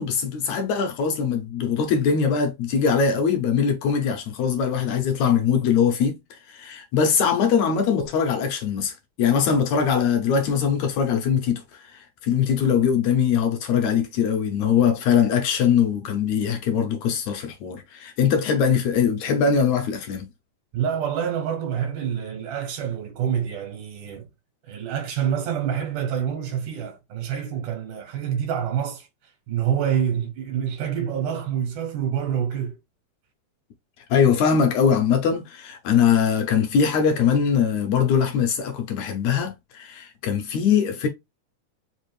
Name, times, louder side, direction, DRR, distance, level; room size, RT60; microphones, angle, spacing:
voice 1, 0.0-20.3 34.1-41.1, left 7 dB, 75° left, 1.7 m, -22 dB
voice 2, 20.7-24.3 24.6-32.8, right 8 dB, 75° right, 2.3 m, -27 dB
5.1 x 2.4 x 3.1 m
omnidirectional pair, 3.8 m